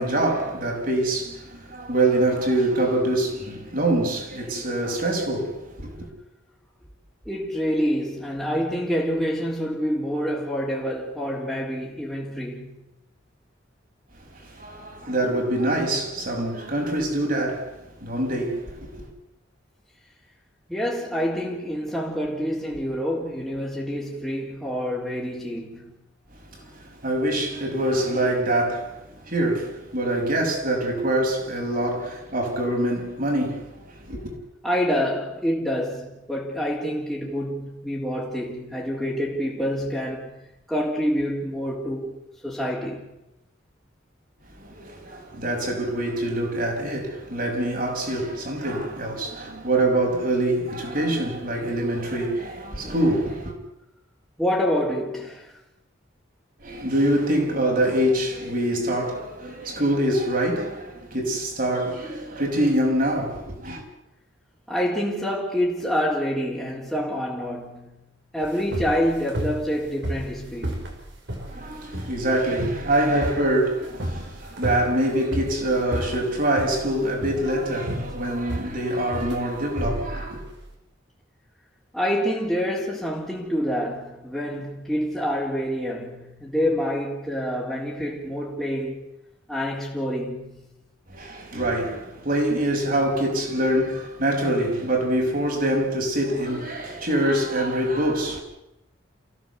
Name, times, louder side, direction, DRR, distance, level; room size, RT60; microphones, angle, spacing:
voice 1, 0.0-6.1 14.3-19.1 26.5-34.3 44.6-53.5 56.6-63.8 71.5-80.4 91.1-98.4, right 1 dB, 45° right, 6.1 m, -25 dB
voice 2, 7.3-12.7 20.7-25.9 34.6-40.4 40.7-42.1 42.4-43.1 54.4-55.6 64.7-68.0 68.3-70.9 81.9-89.1 89.5-90.6, equal, ahead, 3.8 m, -27 dB
sound 1, 68.4-80.7, right 1 dB, 65° right, 5.6 m, -32 dB
28.5 x 16.5 x 8.2 m
head